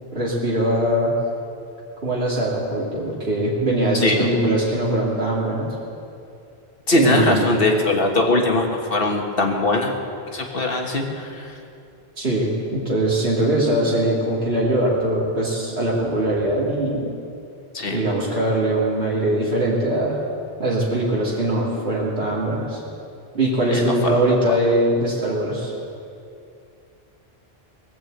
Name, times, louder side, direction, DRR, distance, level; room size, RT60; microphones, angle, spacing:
voice 1, 0.1-1.1 2.0-5.7 6.9-7.6 12.2-17.1 17.9-20.2 20.6-22.8 23.3-25.7, right 1 dB, 75° right, -6 dB, 2.7 m, -21 dB
voice 2, 6.9-9.9 10.3-11.5 17.7-18.0 23.7-24.1 24.5-24.6, left 2 dB, 60° left, 1 dB, 1.8 m, -21 dB
20.5 x 7.7 x 8.0 m, 2.5 s
omnidirectional pair, 1.1 m